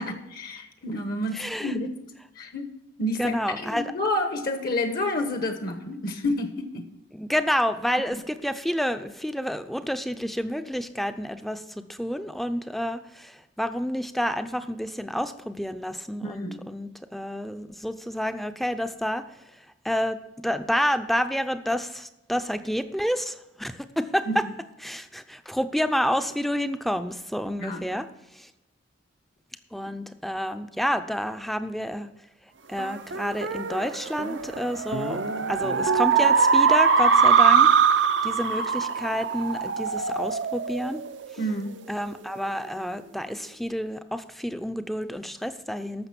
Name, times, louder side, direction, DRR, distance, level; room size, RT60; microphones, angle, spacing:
voice 1, 0.0-1.9 2.4-2.7 3.0-6.8 8.1-8.2 16.2-16.6 24.3-24.4 27.6-27.8 41.4-41.7, left 1 dB, 50° left, 6 dB, 1.1 m, -29 dB
voice 2, 1.3-1.7 3.2-3.9 7.1-19.2 19.8-24.4 24.8-28.1 28.3-28.5 29.7-32.1 32.7-35.2 35.5-37.7 38.2-41.0 41.9-46.1, equal, ahead, 10 dB, 0.5 m, -29 dB
sound 1, 32.8-41.6, right 6 dB, 70° right, 0.6 m, -22 dB
14.0 x 6.0 x 6.0 m, 0.96 s
head